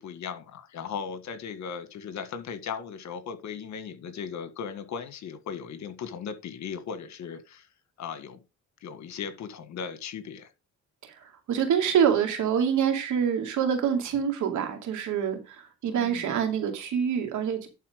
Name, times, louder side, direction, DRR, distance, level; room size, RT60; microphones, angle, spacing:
voice 1, 0.0-7.7 8.0-8.4 8.8-10.5 15.8-16.3, left 6 dB, 65° left, 1.6 m, -37 dB
voice 2, 11.0-17.7, right 8 dB, 75° right, 2.6 m, -26 dB
11.5 x 4.3 x 5.0 m
cardioid pair, 90°, 30 cm